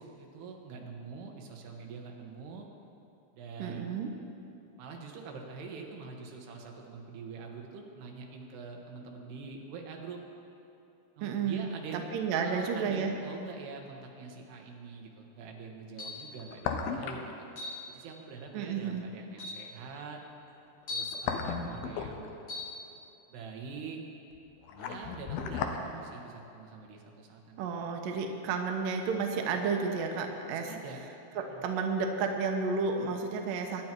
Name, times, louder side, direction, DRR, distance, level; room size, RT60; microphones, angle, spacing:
voice 1, 0.0-2.7 3.3-4.1 4.8-10.2 11.2-17.5 17.9-20.2 20.9-22.4 23.3-24.0 24.8-27.6 30.5-31.0 31.5-31.6, right 5 dB, 85° right, 1 dB, 3.5 m, -44 dB
voice 2, 3.6-4.1 11.2-11.7 12.1-13.1 18.5-19.0 27.6-30.7 31.4-33.8, right 5 dB, 70° right, 3 dB, 2.4 m, -31 dB
sound 1, 13.1-13.2 16.2-17.3 17.6-17.7 20.8-22.6 24.3-25.8 26.1-26.2, left 6 dB, 80° left, 2.6 m, -35 dB
sound 2, 16.0-16.3 17.6-17.8 18.8-18.9 19.4-19.7 20.9-21.2 22.5-22.7, left 3 dB, 55° left, 1.1 m, -38 dB
22.5 x 10.0 x 4.6 m, 2.8 s
omnidirectional pair, 4.6 m